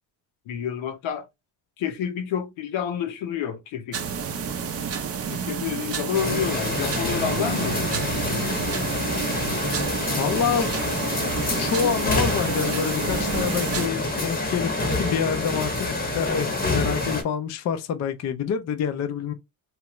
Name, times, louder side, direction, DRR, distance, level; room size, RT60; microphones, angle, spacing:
voice 1, 0.5-1.3 1.8-4.0 5.3-8.5, left 8 dB, 80° left, 0.8 m, -29 dB
sound 1, 3.9-13.9, right 7 dB, 35° right, 0.5 m, -30 dB
sound 2, 6.1-17.2, left 2 dB, 20° left, 0.8 m, -27 dB
voice 2, 10.2-10.7 11.6-19.3, left 7 dB, 40° left, 0.4 m, -27 dB
3.0 x 2.4 x 2.9 m
cardioid pair, 140°, 46 cm